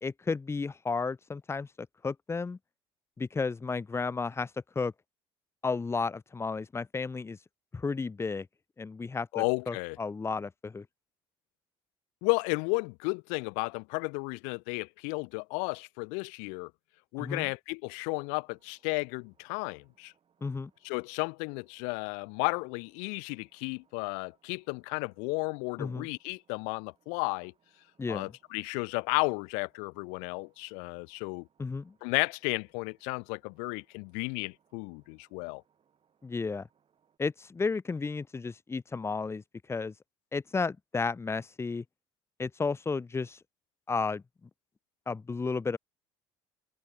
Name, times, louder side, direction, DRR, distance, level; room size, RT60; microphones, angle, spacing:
voice 1, 0.0-2.6 3.2-4.5 4.8-4.9 5.6-7.4 7.7-8.5 8.8-10.9 17.2-17.5 20.4-20.7 25.8-26.1 28.0-28.3 31.6-31.9 36.2-36.7 37.2-39.4 39.7-39.9 40.3-41.8 42.4-43.4 43.9-44.2 45.1-45.8, left 4 dB, 20° left, 0.6 m, -33 dB
voice 2, 9.3-10.0 12.2-16.7 17.1-20.1 20.8-27.5 28.1-31.5 32.0-35.6, left 40 dB or more, 75° left, 0.4 m, -33 dB
sound 1, 17.8-37.2, right 7 dB, 45° right, 7.1 m, -73 dB
hypercardioid pair, 60°, 13 cm